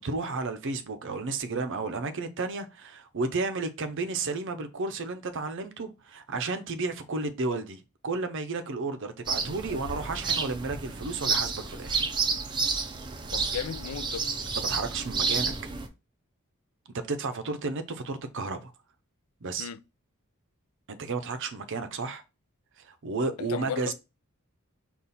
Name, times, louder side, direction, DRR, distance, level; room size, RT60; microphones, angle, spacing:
voice 1, 0.0-12.0 14.6-15.5 16.9-18.7 19.4-19.7 20.9-22.2 22.8-23.9, right 3 dB, 60° right, 0.6 m, -32 dB
sound 1, 9.3-15.9, right 4 dB, 20° right, 0.5 m, -30 dB
voice 2, 13.3-14.3 19.6-19.8 23.5-23.9, left 8 dB, 85° left, 0.4 m, -35 dB
5.4 x 2.4 x 4.1 m
head